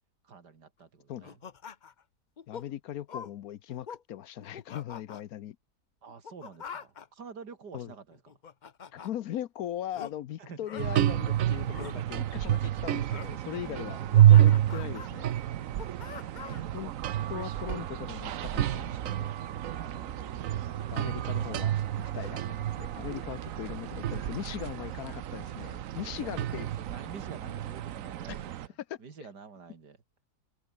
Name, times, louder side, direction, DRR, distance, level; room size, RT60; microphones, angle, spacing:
voice 1, 0.2-1.4 6.0-8.3 10.4-10.8 13.6-13.8 16.1-17.3 19.7-20.2 25.9-30.0, right 5 dB, 90° right, 3.1 m, -49 dB
sound 1, 1.2-2.0 2.4-2.7 3.1-3.3 3.7-4.0 4.4-5.2 6.1-7.1 8.1-9.1 9.9-10.1 10.6-10.8 11.6-11.9 13.1-13.3 13.8-15.1 15.6-16.7, left 6 dB, 40° left, 0.7 m, -44 dB
voice 2, 2.5-5.6 7.7-7.9 8.9-15.3 16.7-16.9 17.3-19.3 20.9-26.7 28.9-29.0, left 11 dB, 70° left, 1.1 m, -39 dB
sound 2, 10.8-28.7, right 12 dB, 65° right, 1.0 m, -28 dB
sound 3, 17.2-27.7, right 3 dB, 30° right, 2.6 m, -52 dB
omnidirectional pair, 1.7 m